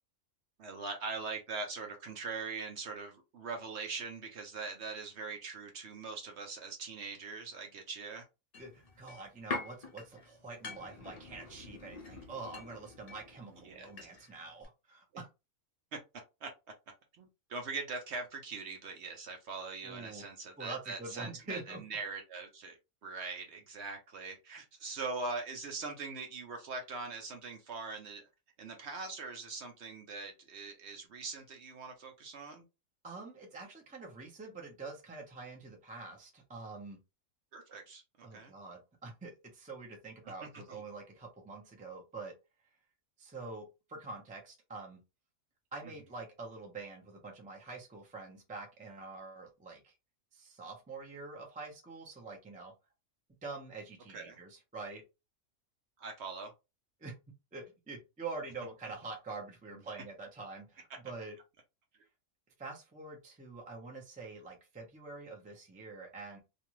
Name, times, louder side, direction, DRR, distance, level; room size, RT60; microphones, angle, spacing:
voice 1, 0.6-8.3 12.1-12.2 13.6-13.9 15.9-16.0 16.4-16.5 17.2-22.8 23.0-28.2 28.6-32.6 37.5-38.5 40.4-40.8 54.1-54.4 56.0-56.5, right 4 dB, 60° right, 4 dB, 0.8 m, -42 dB
sound 1, 8.5-14.4 14.6-14.7, left 3 dB, 45° left, 0.5 m, -45 dB
voice 2, 8.6-15.3 19.8-20.2 20.6-21.8 33.0-37.0 38.2-42.3 43.2-45.0 45.7-49.9 50.3-52.7 53.4-55.0 57.0-57.1 57.5-61.4 62.6-66.4, right 3 dB, 10° right, 0 dB, 0.4 m, -46 dB
2.5 x 2.3 x 2.9 m, 0.26 s
omnidirectional pair, 1.5 m